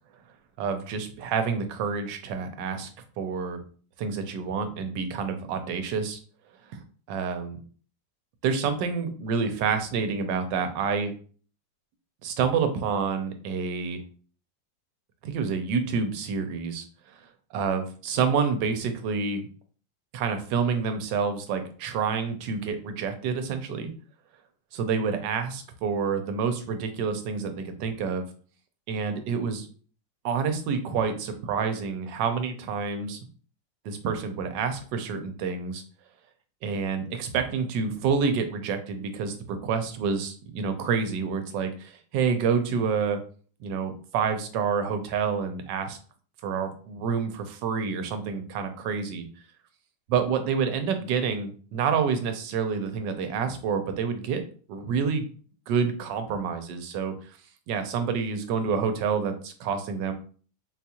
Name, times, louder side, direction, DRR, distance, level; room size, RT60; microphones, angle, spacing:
voice 1, 0.6-2.9 3.2-3.6 4.0-6.2 6.7-7.6 8.4-11.1 12.2-14.0 15.2-16.9 17.1-17.2 17.5-19.4 20.1-23.9 24.7-28.3 28.9-29.7 30.2-33.2 33.8-35.8 36.6-43.2 43.6-46.0 46.4-49.3 50.1-54.4 54.7-55.2 55.7-57.1 57.7-60.1, right 6 dB, 75° right, 7 dB, 1.2 m, -28 dB
4.0 x 2.3 x 2.8 m, 0.42 s
omnidirectional pair, 2.0 m